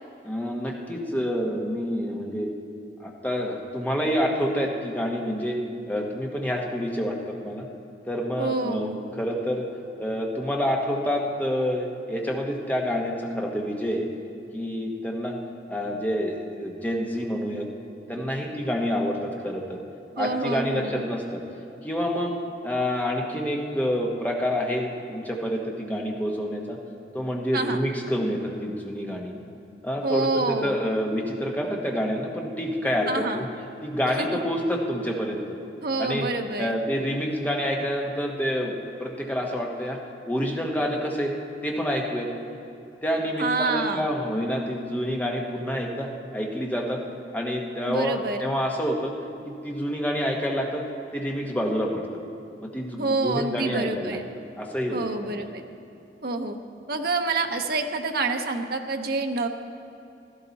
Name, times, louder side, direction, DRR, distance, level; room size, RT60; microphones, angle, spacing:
voice 1, 0.2-2.5 3.0-5.6 5.9-7.7 8.1-9.7 10.0-14.1 14.5-15.4 15.7-17.7 18.1-19.8 20.2-21.4 21.8-22.4 22.6-26.8 27.1-29.3 29.8-33.4 33.8-35.6 36.0-36.3 36.6-40.0 40.3-41.3 41.6-42.3 43.0-47.0 47.3-49.1 49.6-50.8 51.1-52.1 52.6-54.2 54.6-55.3, equal, 10° left, 0 dB, 1.2 m, -28 dB
voice 2, 8.4-9.0 20.2-21.1 27.5-27.8 30.0-30.8 33.1-33.4 34.1-34.3 35.8-36.8 43.4-44.1 47.9-48.4 53.0-54.2 54.9-55.6 56.2-56.6 56.9-59.5, right 3 dB, 60° right, 5 dB, 0.9 m, -27 dB
16.5 x 13.0 x 4.1 m, 2.7 s
head